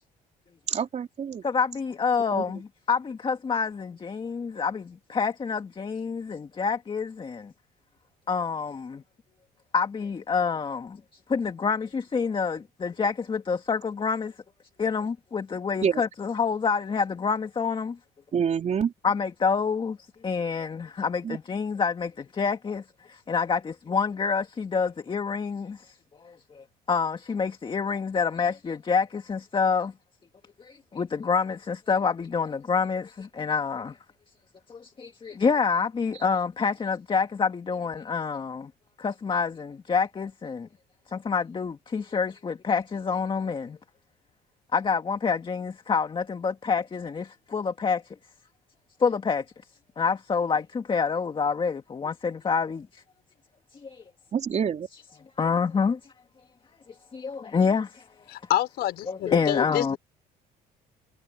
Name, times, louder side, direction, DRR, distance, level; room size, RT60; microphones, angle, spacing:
voice 1, 0.7-1.4 2.3-2.4 15.8-16.0 18.3-18.9 21.2-21.4 54.3-54.9, right 7 dB, 45° right, 4.0 m, -26 dB
voice 2, 1.4-7.5 8.3-9.0 9.7-14.3 14.8-18.0 19.0-20.0 20.2-26.0 26.2-29.9 30.6-34.0 34.7-38.7 39.0-40.7 41.1-43.8 44.7-48.2 49.0-49.4 50.0-53.0 53.7-54.0 55.4-56.0 57.1-58.1 59.1-60.0, left 5 dB, 30° left, 2.0 m, -27 dB
voice 3, 58.3-60.0, left 13 dB, 75° left, 5.1 m, -27 dB
cardioid pair, 110°, 17 cm